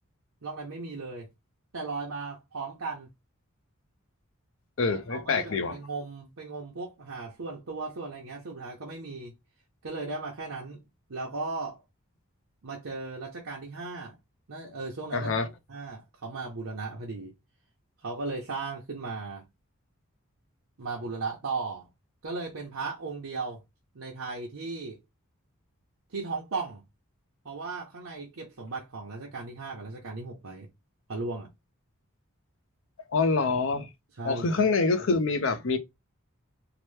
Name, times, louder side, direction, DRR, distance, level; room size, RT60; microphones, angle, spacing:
voice 1, 0.4-1.3 1.7-3.1 4.9-9.3 9.8-10.8 11.1-11.8 12.6-14.2 14.5-15.3 15.7-17.3 18.0-19.5 20.8-21.9 22.2-23.6 23.9-25.0 26.1-26.8 27.4-30.7 31.1-31.5 34.2-34.7, right 3 dB, 75° right, 0.7 m, -36 dB
voice 2, 4.8-5.8 15.1-15.5 33.1-33.9 34.2-35.8, left 4 dB, 60° left, 0.5 m, -26 dB
2.9 x 2.1 x 3.2 m
head